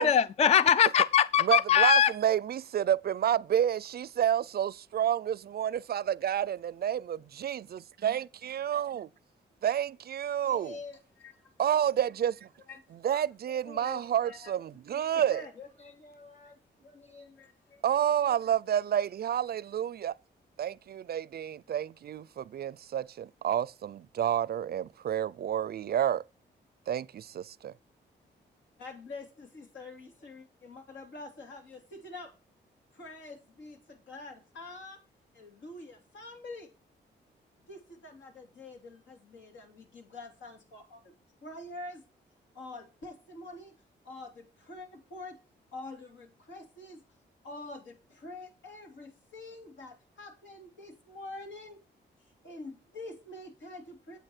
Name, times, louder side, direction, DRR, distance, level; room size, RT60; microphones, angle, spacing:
voice 1, 0.0-2.1, left 9 dB, 35° left, 0.4 m, -22 dB
voice 2, 1.4-9.1 9.6-10.8 11.6-12.5 13.0-15.4 17.8-20.2 20.6-26.2 26.9-27.7, right 10 dB, 55° right, 0.4 m, -29 dB
voice 3, 10.4-11.5 12.7-12.8 13.1-14.5 15.1-18.4 28.8-32.3 32.9-35.0 35.3-36.7 37.6-41.1 41.4-42.0 42.5-43.7 44.0-45.4 45.7-47.0 47.4-51.8 52.4-54.2, left 2 dB, 80° left, 3.2 m, -46 dB
8.9 x 8.0 x 4.4 m
cardioid pair, 65°, 19 cm